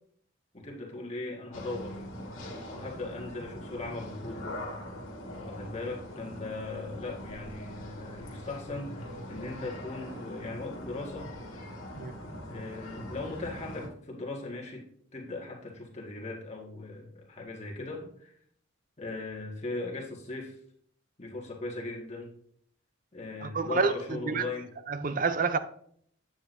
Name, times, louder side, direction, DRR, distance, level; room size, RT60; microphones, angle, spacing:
voice 1, 0.5-2.0 2.7-4.6 5.4-11.3 12.4-14.8 15.1-18.3 19.0-20.5 21.2-22.3 23.1-24.7, left 3 dB, 30° left, 1.7 m, -38 dB
sound 1, 1.5-13.9, left 1 dB, 85° left, 1.6 m, -42 dB
voice 2, 23.4-24.5 24.9-25.6, right 4 dB, 40° right, 0.5 m, -29 dB
9.2 x 7.7 x 2.6 m
head